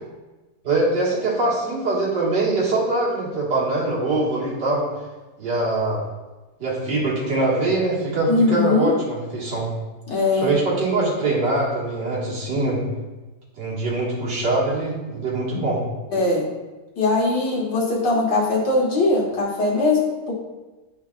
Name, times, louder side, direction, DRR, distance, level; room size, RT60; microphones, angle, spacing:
voice 1, 0.6-4.8 5.4-6.0 6.6-9.7 10.3-12.8 13.6-15.8, right 2 dB, 80° right, -6 dB, 2.4 m, -23 dB
voice 2, 8.3-8.9 10.1-10.5 16.1-16.5 17.0-20.0, left 3 dB, 85° left, -4 dB, 2.1 m, -20 dB
9.5 x 5.1 x 2.4 m, 1.2 s
omnidirectional pair, 1.8 m